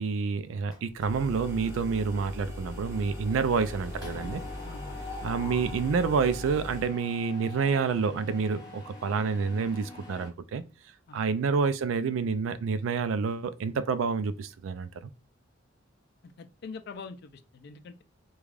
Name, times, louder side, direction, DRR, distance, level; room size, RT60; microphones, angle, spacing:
voice 1, 0.0-4.4 5.2-10.6 11.1-15.1, right 5 dB, 90° right, 0.3 m, -28 dB
Mechanisms, 0.7-1.3 1.6-1.9 2.1-10.3, left 3 dB, 20° left, 1.0 m, -45 dB
sound 1, 1.0-7.0, left 1 dB, 15° right, 0.7 m, -40 dB
voice 2, 4.6-5.0 11.1-11.2 16.2-18.0, left 4 dB, 55° left, 0.4 m, -44 dB
3.2 x 2.3 x 2.4 m
head